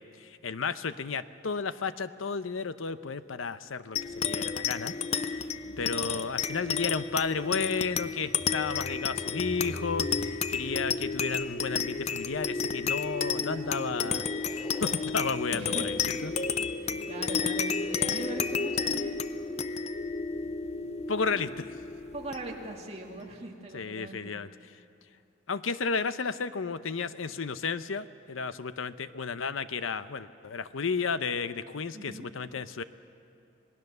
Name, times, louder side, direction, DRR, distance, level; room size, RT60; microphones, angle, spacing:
voice 1, 0.0-4.9 5.2-5.5 5.8-16.3 21.1-21.8 23.7-24.5 25.5-32.8, left 5 dB, 90° left, 13 dB, 0.7 m, -33 dB
sound 1, 4.0-22.8, left 5 dB, 35° left, 0.5 m, -32 dB
voice 2, 5.6-6.0 15.6-16.0 16.6-19.6 20.2-21.6 22.1-24.4 31.9-32.3, right 1 dB, 30° right, 0 dB, 2.2 m, -42 dB
sound 2, 7.6-12.3 13.0-15.6 16.2-16.4, equal, 5° left, 3.4 m, -45 dB
27.0 x 19.0 x 6.7 m, 2.6 s
head